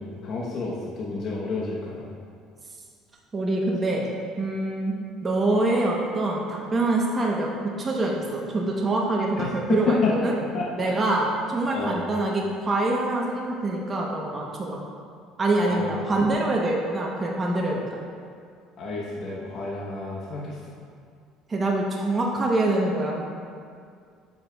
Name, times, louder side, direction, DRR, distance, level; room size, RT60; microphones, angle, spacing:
voice 1, 0.0-2.1 9.4-10.1 10.5-11.0 11.7-12.0 15.7-15.9 18.8-20.8, left 4 dB, 55° left, -4 dB, 1.0 m, -30 dB
voice 2, 3.3-4.0 4.4-7.5 7.8-10.3 10.8-14.8 15.4-17.8 21.5-23.2, right 2 dB, 25° right, -2 dB, 0.9 m, -25 dB
7.8 x 6.9 x 2.3 m, 2.2 s
cardioid pair, 105°, 0 cm